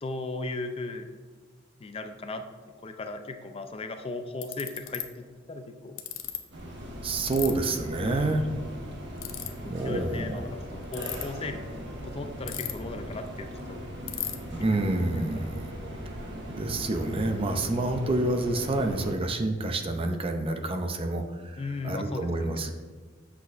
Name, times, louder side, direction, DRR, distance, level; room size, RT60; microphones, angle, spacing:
voice 1, 0.0-1.1 1.8-2.4 2.8-6.0 8.0-8.4 9.6-11.7 12.0-13.8 15.2-15.3 21.6-22.5, left 3 dB, 30° left, 7 dB, 0.4 m, -37 dB
Ratchet pawl, 3.7-3.8 4.4-5.0 6.0-6.4 7.3-7.5 9.2-9.5 10.8-11.2 12.5-13.0 13.3-13.4 13.6-13.7 14.1-14.4, left 12 dB, 75° left, 0.6 m, -33 dB
sound 1, 6.5-19.2, equal, 65° right, 1.2 m, -39 dB
voice 2, 7.0-8.5 9.6-10.5 14.6-15.7 16.5-22.7, right 2 dB, 30° right, 5 dB, 0.5 m, -28 dB
8.0 x 6.0 x 2.5 m, 1.5 s
head